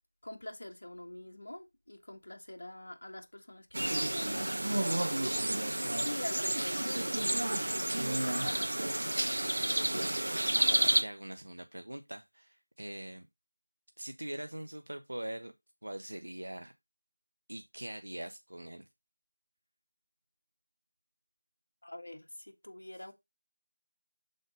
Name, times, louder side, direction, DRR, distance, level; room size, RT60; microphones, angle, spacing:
voice 1, 0.2-4.4 5.8-7.8 8.4-8.8 21.8-23.1, left 1 dB, 50° left, 1.6 m, -45 dB
sound 1, 3.7-11.0, right 1 dB, 50° right, 1.1 m, -30 dB
voice 2, 5.3-5.8 9.6-13.3 14.0-15.5 15.8-16.7 17.5-18.8, right 1 dB, 75° right, 0.9 m, -43 dB
6.6 x 4.1 x 5.0 m
figure-of-eight pair, 180°, 0 cm